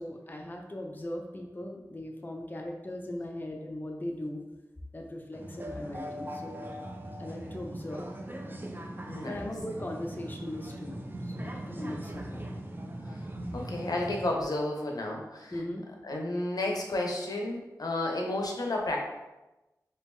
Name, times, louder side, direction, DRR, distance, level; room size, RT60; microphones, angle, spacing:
voice 1, 0.0-4.4 4.9-6.6 7.2-8.1 9.2-12.5 15.5-15.9, left 1 dB, 30° left, 1 dB, 0.6 m, -39 dB
sound 1, 5.3-14.3, right 1 dB, 30° right, 0.4 m, -40 dB
voice 2, 9.1-9.4 13.5-15.6 16.0-19.0, left 2 dB, 70° left, 0 dB, 0.7 m, -32 dB
2.9 x 2.9 x 3.6 m, 1.0 s
wide cardioid pair, 55°, 7 cm